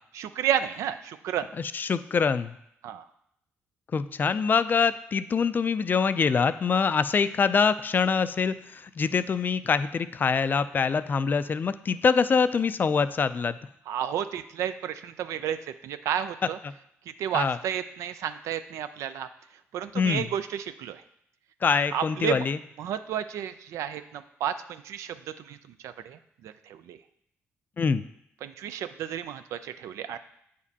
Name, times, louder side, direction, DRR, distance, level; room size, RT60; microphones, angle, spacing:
voice 1, 0.1-1.5 2.8-3.0 13.9-15.6 15.8-16.6 17.2-19.3 19.7-21.0 21.9-22.5 22.8-25.6 25.8-27.0 28.4-30.2, right 10 dB, 80° right, 11 dB, 0.4 m, -31 dB
voice 2, 1.6-2.5 3.9-13.6 16.6-16.7 17.3-17.6 19.9-20.3 21.6-22.6 27.8-28.0, left 5 dB, 40° left, 13 dB, 0.3 m, -24 dB
7.9 x 5.0 x 2.8 m, 0.75 s
cardioid pair, 75°, 5 cm